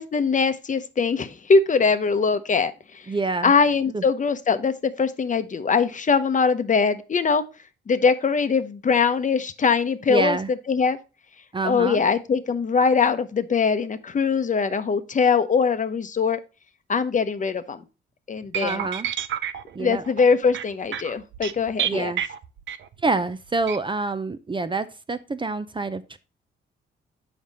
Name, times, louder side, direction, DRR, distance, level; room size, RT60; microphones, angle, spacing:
voice 1, 0.0-3.0 3.4-7.4 7.9-10.4 10.7-11.0 11.6-16.4 16.9-17.8 18.3-18.9 19.8-22.1, left 5 dB, 40° left, 10 dB, 0.8 m, -22 dB
voice 2, 3.1-3.5 3.9-4.0 10.1-10.5 11.5-12.0 18.6-19.1 19.7-20.0 21.8-22.2 23.0-26.2, right 3 dB, 25° right, 12 dB, 0.6 m, -27 dB
sound 1, 18.5-23.1 23.6-23.8, right 10 dB, 70° right, 0.6 m, -30 dB
7.2 x 5.2 x 4.1 m, 0.31 s
cardioid pair, 75°, 20 cm